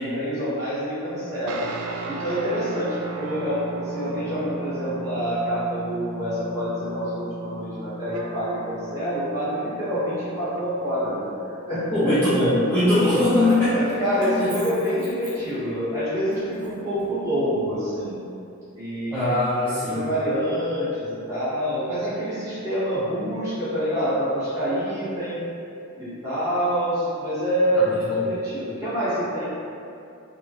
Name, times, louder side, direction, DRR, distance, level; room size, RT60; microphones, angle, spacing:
voice 1, 0.1-1.7 2.1-12.5 13.7-18.2 18.7-19.3 19.6-25.4 26.0-29.5, equal, 15° right, -14 dB, 1.3 m, -26 dB
sound 1, 1.5-11.2, right 2 dB, 90° right, 0.3 m, -36 dB
voice 2, 11.9-13.8 14.4-14.5 19.1-20.1 27.7-28.2, left 1 dB, 10° left, -13 dB, 0.4 m, -21 dB
Keys jangling, 12.7-15.9 16.3-17.6, equal, 55° right, 1.4 m, -43 dB
3.7 x 2.2 x 2.8 m, 2.6 s
head